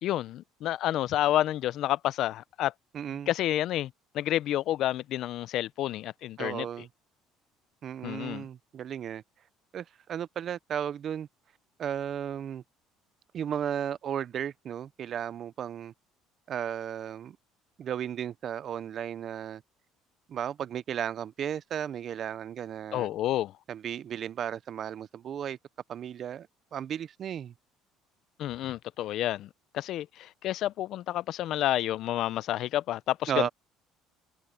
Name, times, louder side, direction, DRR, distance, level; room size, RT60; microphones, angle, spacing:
voice 1, 0.0-2.7 3.3-6.7 8.0-8.5 22.9-23.5 28.4-33.5, left 13 dB, 55° left, 0.4 m, -29 dB
voice 2, 2.9-3.3 6.4-6.9 7.8-9.2 9.7-11.3 11.8-12.6 13.3-15.9 16.5-17.4 17.8-19.6 20.3-23.1 23.7-25.6 25.9-27.5 33.3-33.5, right 9 dB, 35° right, 0.4 m, -34 dB
cardioid pair, 160°, 0 cm